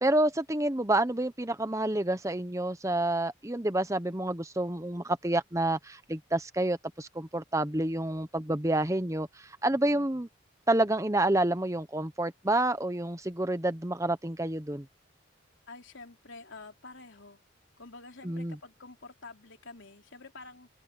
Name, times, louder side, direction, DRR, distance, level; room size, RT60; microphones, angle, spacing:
voice 1, 0.0-10.3 10.7-14.9 18.2-18.6, right 1 dB, 15° right, 1.0 m, -28 dB
voice 2, 15.7-17.4 17.8-20.7, left 3 dB, 75° left, 3.2 m, -48 dB
open air
head